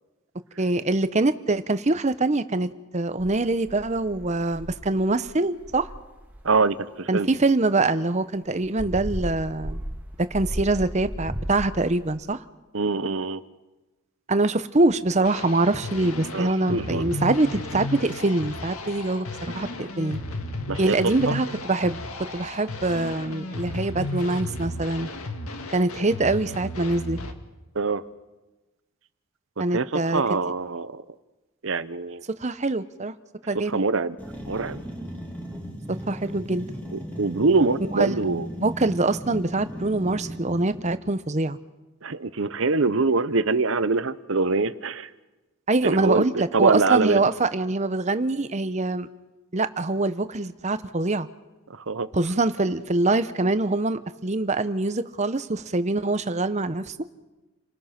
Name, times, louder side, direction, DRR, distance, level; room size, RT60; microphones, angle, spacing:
voice 1, 0.6-5.9 7.1-9.8 10.2-12.4 14.3-20.2 20.8-22.0 22.3-25.1 25.7-27.2 29.6-30.2 32.4-33.1 33.5-33.8 36.1-36.7 37.9-38.1 38.6-41.6 45.7-49.1 49.5-51.3 52.1-56.9, right 2 dB, 30° right, 12 dB, 0.8 m, -24 dB
sound 1, 3.2-4.9 5.3-5.4 5.6-6.5 8.5-12.1, equal, 10° right, 2.1 m, -35 dB
voice 2, 6.4-7.3 12.7-13.4 16.3-17.1 20.7-21.0 21.3-21.4 27.7-28.0 29.7-31.0 31.6-32.2 33.7-34.2 34.5-34.8 36.9-38.5 42.0-45.1 45.8-47.2 51.7-52.1, right 3 dB, 65° right, 14 dB, 0.9 m, -24 dB
sound 2, 15.2-27.3, left 2 dB, 90° left, 1.9 m, -34 dB
sound 3, 34.2-41.0, right 1 dB, 10° left, 5.4 m, -37 dB
29.5 x 19.5 x 5.9 m, 1.1 s
head